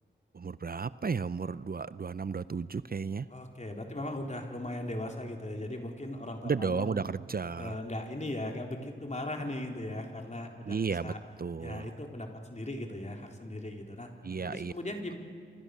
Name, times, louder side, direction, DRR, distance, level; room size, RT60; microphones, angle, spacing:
voice 1, 0.3-3.3 6.4-7.8 10.7-11.1 11.4-11.9 14.2-14.7, right 5 dB, 50° right, 16 dB, 0.6 m, -33 dB
voice 2, 3.3-6.9 7.5-11.2 11.6-14.1 14.4-15.1, left 1 dB, 35° left, 2 dB, 4.0 m, -38 dB
30.0 x 25.5 x 6.7 m, 2.3 s
cardioid pair, 55°, 20 cm